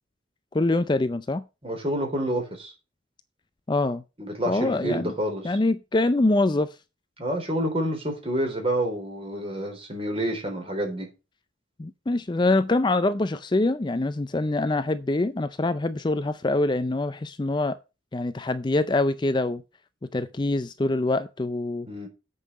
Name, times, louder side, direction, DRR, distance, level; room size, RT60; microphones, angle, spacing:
voice 1, 0.5-1.4 3.7-4.0 4.5-5.1 5.4-6.7 11.8-17.8 18.1-19.6 20.1-21.9, left 2 dB, 25° left, 0.5 m, -24 dB
voice 2, 1.6-2.7 4.2-5.5 7.2-11.1 21.9-22.1, right 1 dB, 30° right, 3.7 m, -28 dB
8.2 x 5.5 x 7.3 m
head